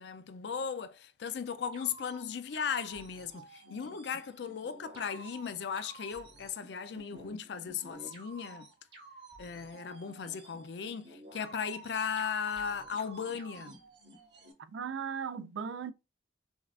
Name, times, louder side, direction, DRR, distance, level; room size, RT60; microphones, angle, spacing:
voice 1, 0.0-8.7 9.4-13.8, left 6 dB, 65° left, 0.4 m, -37 dB
sound 1, 1.7-14.5, right 2 dB, 65° right, 1.5 m, -52 dB
voice 2, 14.7-15.9, right 7 dB, 85° right, 0.4 m, -37 dB
5.3 x 2.4 x 2.4 m
head